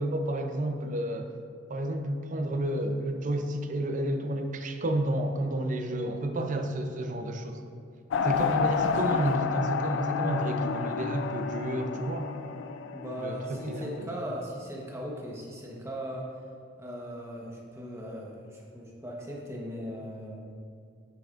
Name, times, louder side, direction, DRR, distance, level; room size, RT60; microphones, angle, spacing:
voice 1, 0.0-1.4 1.7-7.6 8.2-12.3 13.2-14.2, right 1 dB, 45° right, 6 dB, 0.5 m, -31 dB
sound 1, 8.1-14.0, left 6 dB, 70° left, 0.3 m, -30 dB
voice 2, 12.9-16.3 16.8-20.4, equal, 15° right, -3 dB, 1.0 m, -38 dB
9.2 x 6.7 x 2.5 m, 2.2 s
head